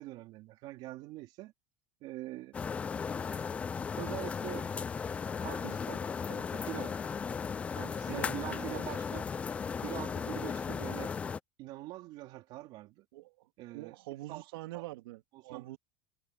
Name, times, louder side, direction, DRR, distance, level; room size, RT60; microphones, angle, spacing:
voice 1, 0.0-1.5 2.0-2.7 4.0-4.7 5.4-7.0 7.7-9.3 9.8-11.2 11.6-13.1 13.6-14.0 14.3-14.4 14.7-14.8 15.3-15.7, right 17 dB, 40° right, 4.0 m, -44 dB
sound 1, 2.5-11.4, left 6 dB, 10° left, 0.3 m, -36 dB
voice 2, 8.1-9.0 13.1-13.5 13.7-15.8, right 17 dB, 85° right, 3.2 m, -45 dB
supercardioid pair, 180°, 12 cm